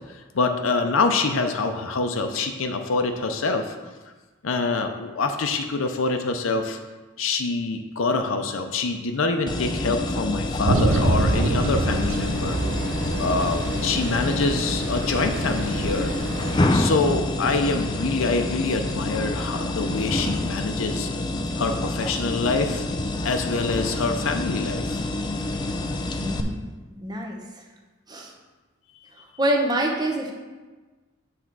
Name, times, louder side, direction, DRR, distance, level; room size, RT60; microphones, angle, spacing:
voice 1, 0.1-3.7 4.4-6.8 7.2-12.6 13.2-16.1 16.7-21.1 21.6-22.8 23.2-25.0, left 3 dB, 85° left, 6 dB, 0.6 m, -25 dB
sound 1, 9.5-26.4, left 2 dB, 20° left, 0.4 m, -27 dB
sound 2, 10.6-16.7, right 2 dB, 65° right, 0.6 m, -27 dB
voice 2, 26.2-26.7 27.0-27.6 28.1-28.3 29.2-30.3, right 1 dB, 20° right, 0 dB, 0.9 m, -26 dB
8.0 x 3.5 x 6.0 m, 1.3 s
head